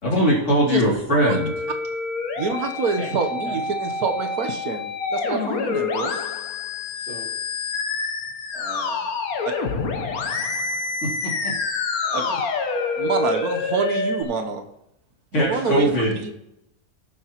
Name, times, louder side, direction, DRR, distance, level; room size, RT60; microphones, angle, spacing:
voice 1, 0.0-1.5 11.0-11.5 15.3-16.3, equal, 50° left, -3 dB, 3.0 m, -21 dB
voice 2, 0.6-1.4 2.4-6.2 9.4-9.5 12.1-12.2 13.0-14.6 15.3-16.3, right 4 dB, 85° right, 5 dB, 1.5 m, -26 dB
Musical instrument, 1.2-14.2, left 4 dB, 75° left, 1.4 m, -27 dB
voice 3, 6.9-7.3 8.5-9.2 9.6-9.7 12.0-12.4 12.9-13.0 15.6-15.7, right 1 dB, 45° right, 1 dB, 1.8 m, -38 dB
18.0 x 7.0 x 3.0 m, 0.83 s
omnidirectional pair, 1.6 m